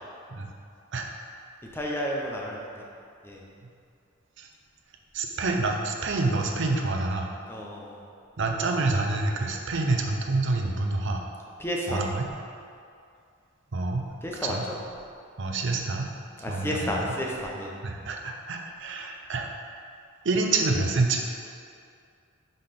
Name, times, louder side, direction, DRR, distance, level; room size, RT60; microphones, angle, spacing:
voice 1, 1.7-2.8 3.2-3.4 7.5-8.0 11.6-12.0 14.2-14.8 16.4-17.7, equal, 10° left, -2 dB, 0.7 m, -31 dB
voice 2, 5.1-7.3 8.4-11.2 11.9-12.3 13.7-14.1 14.4-14.6 15.4-16.1 16.5-17.0 17.8-19.5 20.2-21.2, right 3 dB, 60° right, 2 dB, 0.6 m, -27 dB
5.1 x 3.9 x 5.7 m, 2.4 s
head